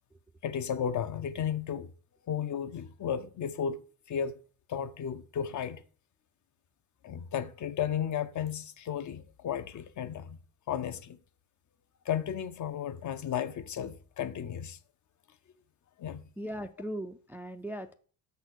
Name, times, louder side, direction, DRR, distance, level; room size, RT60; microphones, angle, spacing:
voice 1, 0.4-1.9 2.3-4.4 4.7-5.8 7.0-10.4 10.7-11.2 12.0-14.8 16.0-16.2, left 8 dB, 50° left, 0.7 m, -34 dB
voice 2, 16.4-17.9, equal, 5° right, 0.3 m, -38 dB
6.2 x 4.1 x 6.2 m
cardioid pair, 110°, 40 cm